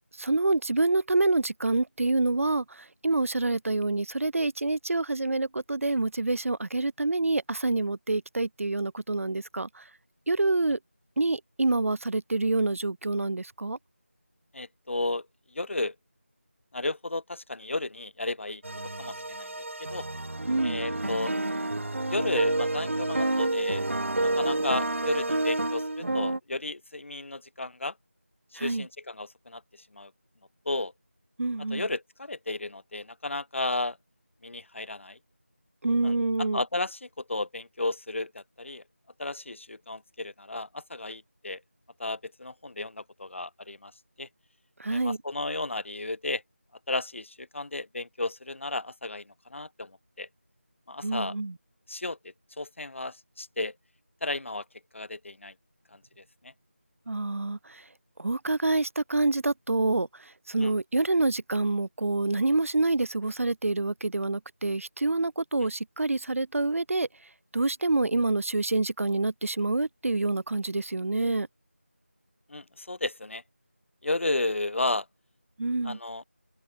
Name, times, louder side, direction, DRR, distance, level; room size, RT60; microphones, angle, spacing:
voice 1, 0.2-9.9 10.3-10.8 11.2-13.8 20.5-20.8 28.6-28.9 31.4-31.9 35.8-36.6 44.8-45.2 51.0-51.5 57.1-57.8 58.2-67.1 67.5-71.5 75.6-76.0, right 2 dB, 85° right, 0.3 m, -27 dB
voice 2, 14.5-15.3 15.5-15.9 16.7-18.6 19.0-19.5 19.8-20.1 20.6-21.3 22.1-23.8 24.2-27.9 28.5-29.6 29.9-30.1 30.7-30.9 31.7-34.0 34.4-35.2 36.0-36.1 36.4-38.8 39.2-41.6 42.0-43.9 44.2-44.3 44.9-46.4 46.9-50.3 50.9-51.3 51.9-53.7 54.2-54.6 54.9-55.5 55.9-56.5 60.6-60.7 72.5-73.4 74.0-75.1 75.8-76.2, left 2 dB, 65° left, 0.5 m, -33 dB
sound 1, 18.6-26.4, right 2 dB, 65° right, 0.8 m, -29 dB
open air
figure-of-eight pair, 170°, 7 cm